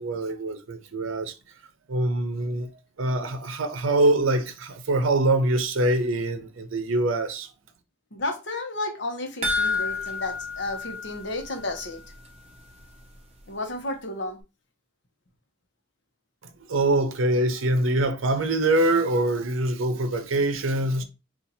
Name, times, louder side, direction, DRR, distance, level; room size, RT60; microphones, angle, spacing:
voice 1, 0.0-1.3 1.9-2.7 3.0-7.5 16.7-21.0, right 2 dB, 90° right, 0.6 m, -24 dB
voice 2, 8.1-12.0 13.5-14.4, left 2 dB, 60° left, 0.8 m, -32 dB
sound 1, 9.4-12.0 12.3-12.4 12.8-12.9, left 4 dB, 30° right, 0.6 m, -29 dB
2.7 x 2.4 x 4.0 m
head